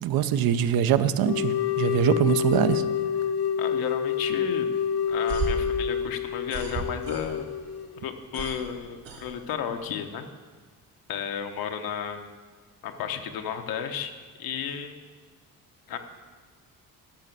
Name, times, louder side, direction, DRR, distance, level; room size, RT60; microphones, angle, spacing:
voice 1, 0.0-2.8, right 9 dB, 85° right, 12 dB, 0.7 m, -23 dB
sound 1, 1.2-8.0, left 8 dB, 45° left, 0.5 m, -28 dB
voice 2, 3.6-4.7 5.1-7.5 8.0-10.3 11.1-12.3 12.8-14.1 14.4-14.9 15.9-16.0, left 8 dB, 85° left, 6 dB, 1.0 m, -33 dB
sound 2, 5.1-7.6 7.9-9.8, right 4 dB, 70° right, 2.6 m, -34 dB
12.0 x 6.2 x 6.7 m, 1.5 s
cardioid pair, 135°, 35 cm